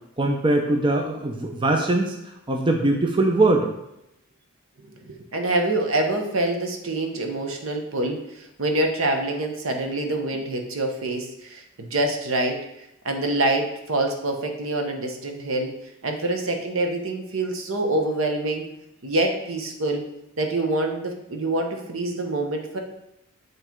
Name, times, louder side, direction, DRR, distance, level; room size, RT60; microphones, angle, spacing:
voice 1, 0.2-2.1 2.5-3.7, right 2 dB, 25° right, 2 dB, 0.6 m, -21 dB
voice 2, 4.8-12.6 13.0-15.7 16.0-18.6 19.0-20.1 20.4-22.8, right 2 dB, 70° right, 3 dB, 1.0 m, -26 dB
8.1 x 3.3 x 4.5 m, 0.83 s
head